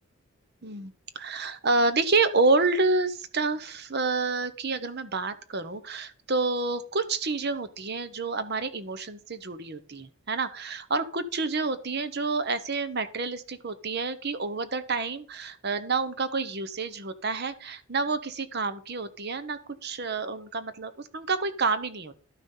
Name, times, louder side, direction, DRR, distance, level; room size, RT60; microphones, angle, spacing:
voice 1, 0.6-22.1, right 3 dB, 50° right, 12 dB, 0.9 m, -28 dB
12.0 x 6.1 x 5.5 m, 0.40 s
head